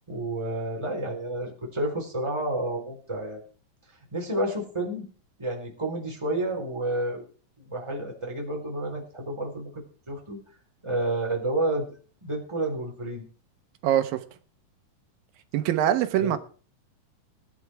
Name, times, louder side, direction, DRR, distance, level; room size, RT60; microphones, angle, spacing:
voice 1, 0.1-3.4 4.1-5.1 5.4-7.2 7.6-10.4 10.8-11.9 12.2-13.2 16.2-16.4, right 1 dB, 10° right, 4.1 m, -30 dB
voice 2, 13.8-14.2 15.5-16.4, right 11 dB, 85° right, 2.8 m, -23 dB
18.5 x 9.8 x 4.8 m
omnidirectional pair, 4.0 m